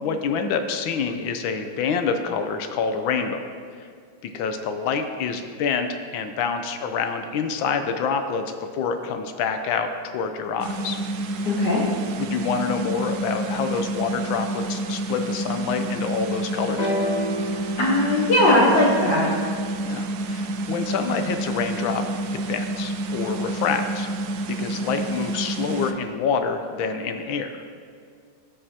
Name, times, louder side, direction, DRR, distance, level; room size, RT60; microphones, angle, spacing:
voice 1, 0.0-3.4 3.8-3.9 4.3-8.4 8.7-11.0 12.2-16.9 19.8-22.0 22.3-24.1 24.6-27.5, left 5 dB, 80° left, 7 dB, 1.4 m, -27 dB
sound 1, 10.6-25.9, right 2 dB, 75° right, 0.9 m, -29 dB
voice 2, 11.4-11.8 17.8-19.3, left 1 dB, 60° left, -4 dB, 1.5 m, -19 dB
sound 2, 16.8-20.6 21.5-21.6, left 1 dB, 45° left, 0.5 m, -31 dB
15.5 x 5.5 x 2.8 m, 2.2 s
omnidirectional pair, 2.2 m